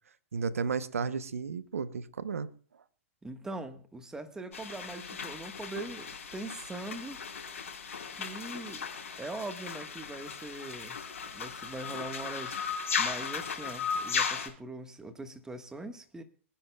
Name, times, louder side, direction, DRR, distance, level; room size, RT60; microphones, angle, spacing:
voice 1, 0.3-2.5, right 5 dB, 90° right, 0.8 m, -33 dB
voice 2, 3.2-7.2 8.1-8.9 9.2-11.0 11.3-16.2, right 2 dB, 10° right, 1.4 m, -42 dB
sound 1, 4.5-14.5, left 6 dB, 80° left, 4.4 m, -36 dB
25.0 x 10.0 x 2.3 m
hypercardioid pair, 125°, 7 cm